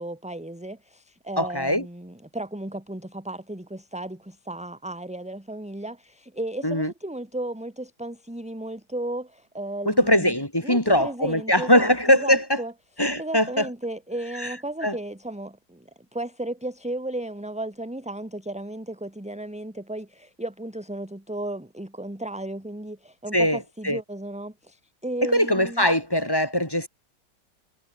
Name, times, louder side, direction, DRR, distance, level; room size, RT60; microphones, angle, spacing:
voice 1, 0.0-10.3 10.6-12.7 13.2-25.9, right 1 dB, 5° right, 2.0 m, -34 dB
voice 2, 1.4-1.9 6.6-6.9 9.9-12.6 13.0-13.7 14.4-14.5 14.8-15.0 23.3-23.6 23.8-24.0 25.2-26.9, left 1 dB, 10° left, 3.7 m, -21 dB
omnidirectional pair, 1.9 m